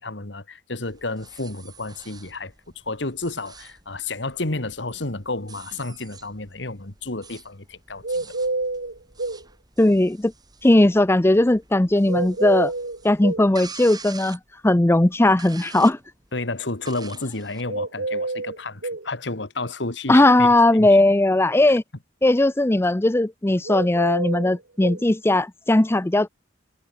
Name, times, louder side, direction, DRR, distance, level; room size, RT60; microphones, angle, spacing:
voice 1, 0.0-2.5 2.9-8.3 16.3-20.9, left 2 dB, 70° left, 2.4 m, -31 dB
sound 1, 0.8-17.8, right 5 dB, 20° right, 5.9 m, -47 dB
sound 2, 8.0-9.4 12.1-13.5 17.7-19.1 23.6-25.0, right 2 dB, 75° right, 2.0 m, -28 dB
voice 2, 9.8-10.3 10.6-12.7 13.0-16.0 20.1-21.8 22.2-26.3, left 1 dB, 15° left, 0.6 m, -18 dB
head